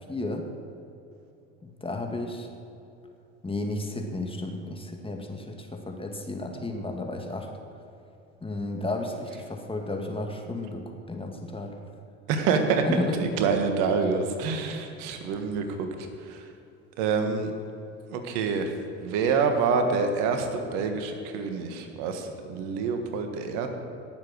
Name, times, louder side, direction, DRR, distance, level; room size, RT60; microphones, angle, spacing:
voice 1, 0.1-0.5 1.6-2.5 3.4-7.5 8.4-11.8 12.8-13.2, left 2 dB, 15° left, 3 dB, 2.2 m, -33 dB
voice 2, 12.3-12.8 13.1-15.9 16.2-16.4 17.0-17.5 18.1-18.7 19.0-23.7, right 5 dB, 70° right, 6 dB, 1.6 m, -27 dB
18.5 x 7.5 x 6.4 m, 2.8 s
hypercardioid pair, 70°, 35 cm